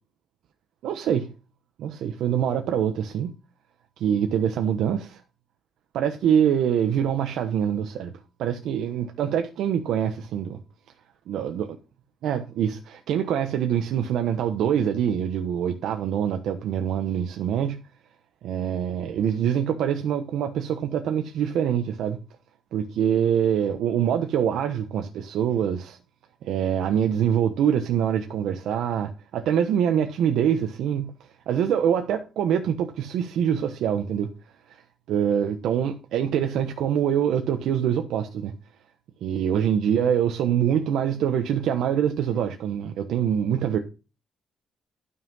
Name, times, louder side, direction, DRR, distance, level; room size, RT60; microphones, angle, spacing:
voice 1, 0.8-1.3 1.8-3.3 4.0-5.2 5.9-8.1 8.4-10.6 11.3-11.7 12.2-17.8 18.4-22.2 22.7-26.0 26.4-31.1 31.5-34.3 34.7-34.8 35.1-38.5 39.2-43.8, right 9 dB, 75° right, 1.1 m, -24 dB
12.5 x 5.7 x 5.5 m
cardioid pair, 180°, 0 cm